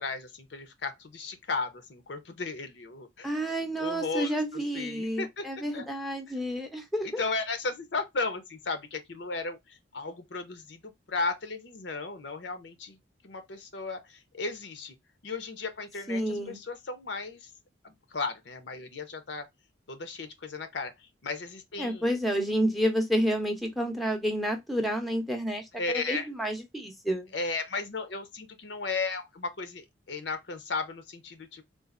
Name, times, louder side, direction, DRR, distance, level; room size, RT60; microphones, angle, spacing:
voice 1, 0.0-5.9 6.3-6.4 7.0-13.0 13.2-14.9 15.2-17.5 17.8-19.5 19.9-22.1 25.7-26.3 27.3-31.6, left 3 dB, 70° left, 0.7 m, -35 dB
voice 2, 3.2-7.2 16.1-16.6 21.8-25.6 25.9-27.3, equal, ahead, 0.6 m, -30 dB
3.9 x 2.5 x 2.4 m
head